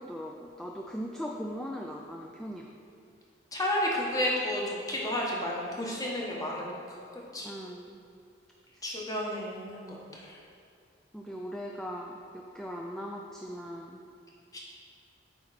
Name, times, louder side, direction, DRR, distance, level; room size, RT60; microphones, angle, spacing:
voice 1, 0.0-2.7 7.4-8.0 8.7-8.8 11.1-14.0, equal, 5° left, -1 dB, 0.3 m, -39 dB
voice 2, 3.5-7.5 8.8-10.4 14.5-14.6, left 1 dB, 20° left, -3 dB, 1.1 m, -32 dB
8.3 x 4.4 x 4.1 m, 2.4 s
head